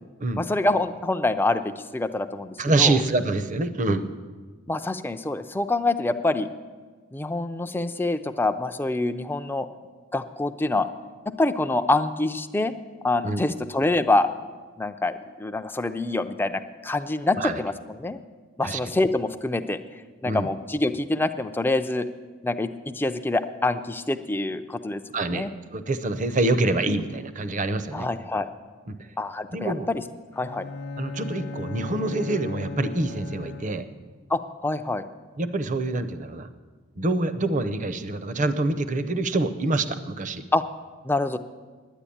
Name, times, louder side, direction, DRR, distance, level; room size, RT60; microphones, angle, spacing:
voice 1, 0.4-3.0 4.7-6.5 7.1-9.7 10.1-10.9 11.3-12.7 13.0-14.3 14.8-18.2 18.6-19.8 20.2-22.1 22.4-25.0 25.3-25.5 27.9-28.5 29.2-30.0 30.4-30.7 34.3-35.0 40.5-40.6 41.0-41.4, left 2 dB, 10° left, 9 dB, 0.4 m, -26 dB
voice 2, 2.6-4.1 13.2-13.4 17.3-17.6 18.6-18.8 20.2-20.5 25.1-25.5 25.7-28.1 28.9-29.0 29.5-29.9 31.0-33.9 35.4-36.5 37.0-40.4, right 2 dB, 35° right, 11 dB, 0.7 m, -26 dB
Bowed string instrument, 30.3-34.1, left 3 dB, 50° left, 0.8 m, -37 dB
10.0 x 9.7 x 8.5 m, 1.4 s
head